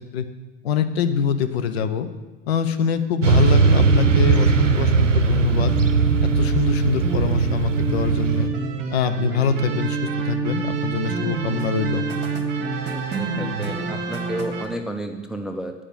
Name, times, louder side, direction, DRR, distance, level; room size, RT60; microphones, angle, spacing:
voice 1, 0.6-2.1 2.5-5.7 6.2-8.5 8.9-10.0 10.2-12.1, left 7 dB, 55° left, 10 dB, 0.8 m, -24 dB
Motorcycle / Traffic noise roadway noise, 3.2-8.5, right 4 dB, 85° right, 0.6 m, -19 dB
sound 1, 3.7-14.7, right 4 dB, 30° right, 1.6 m, -27 dB
voice 2, 12.6-15.7, right 1 dB, ahead, 5 dB, 0.5 m, -32 dB
10.0 x 5.0 x 7.2 m, 1.2 s
figure-of-eight pair, 80°, 36 cm